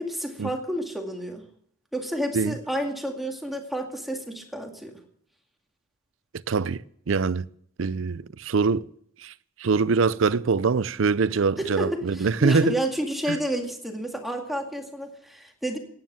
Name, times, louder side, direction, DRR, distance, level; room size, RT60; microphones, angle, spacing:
voice 1, 0.0-1.4 1.9-4.9 11.6-15.8, right 1 dB, ahead, 2.2 m, -30 dB
voice 2, 6.5-7.4 7.8-8.9 9.2-9.3 9.6-12.8 13.3-13.4, right 4 dB, 75° right, 0.5 m, -23 dB
16.5 x 9.7 x 7.6 m
head